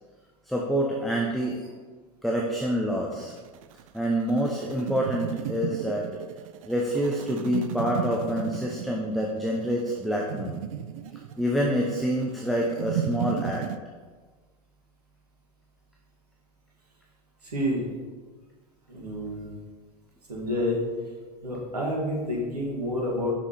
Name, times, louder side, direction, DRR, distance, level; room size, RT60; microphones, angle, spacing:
voice 1, 0.5-1.6 2.2-3.3 3.9-6.1 6.7-10.6 11.4-13.7, equal, ahead, -1 dB, 0.9 m, -27 dB
sound 1, 3.1-13.8, right 10 dB, 60° right, 0.4 m, -34 dB
voice 2, 17.4-17.9 18.9-19.5 20.3-20.8 21.4-23.3, left 1 dB, 80° right, -4 dB, 2.0 m, -29 dB
6.2 x 6.0 x 4.5 m, 1.4 s
figure-of-eight pair, 80°, 20 cm